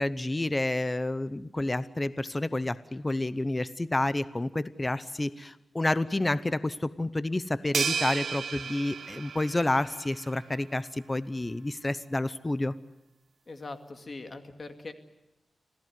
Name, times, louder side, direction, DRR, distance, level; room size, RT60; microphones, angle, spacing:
voice 1, 0.0-12.7, left 2 dB, 20° left, 15 dB, 0.8 m, -29 dB
sound 1, 7.7-10.2, right 6 dB, 85° right, 1.3 m, -33 dB
voice 2, 13.5-14.9, left 3 dB, 45° left, 7 dB, 2.3 m, -41 dB
27.5 x 17.0 x 9.5 m, 0.95 s
wide cardioid pair, 100°, 0 cm